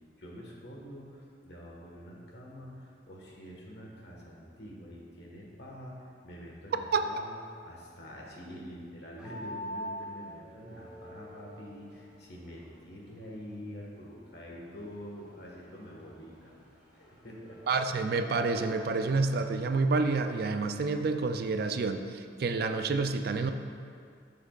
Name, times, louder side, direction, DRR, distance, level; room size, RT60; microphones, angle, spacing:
voice 1, 0.2-7.4 7.6-16.5 16.9-17.6, equal, 65° left, -2 dB, 1.5 m, -46 dB
sound 1, 9.2-21.1, left 1 dB, 5° right, 1.9 m, -47 dB
voice 2, 17.7-23.5, right 4 dB, 55° right, 8 dB, 0.4 m, -29 dB
10.5 x 7.4 x 2.4 m, 2.3 s
head